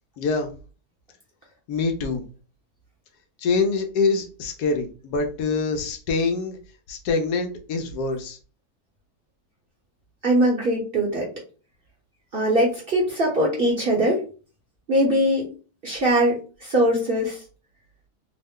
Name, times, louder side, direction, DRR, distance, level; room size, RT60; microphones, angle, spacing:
voice 1, 0.2-0.5 1.7-2.2 3.4-6.6 6.9-8.4, left 4 dB, 75° left, 5 dB, 1.1 m, -25 dB
voice 2, 10.2-11.3 12.3-14.2 14.9-15.5 15.8-17.4, right 1 dB, 45° right, -2 dB, 0.8 m, -21 dB
3.0 x 2.1 x 3.5 m, 0.36 s
omnidirectional pair, 1.8 m